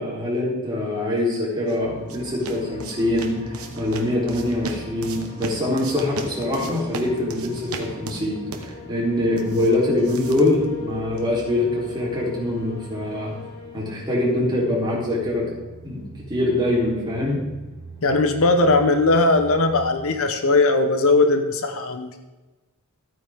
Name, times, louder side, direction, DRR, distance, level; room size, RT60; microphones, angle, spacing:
voice 1, 0.0-13.3 13.7-15.4 15.8-16.0 16.3-17.4, left 1 dB, 20° right, -5 dB, 3.5 m, -24 dB
sound 1, 1.4-11.4, right 3 dB, 70° right, 1.2 m, -38 dB
sound 2, 1.8-19.9, left 2 dB, 30° left, 2.3 m, -40 dB
voice 2, 18.0-22.1, left 2 dB, 65° left, 7 dB, 0.9 m, -19 dB
14.0 x 9.1 x 3.6 m, 1.2 s
head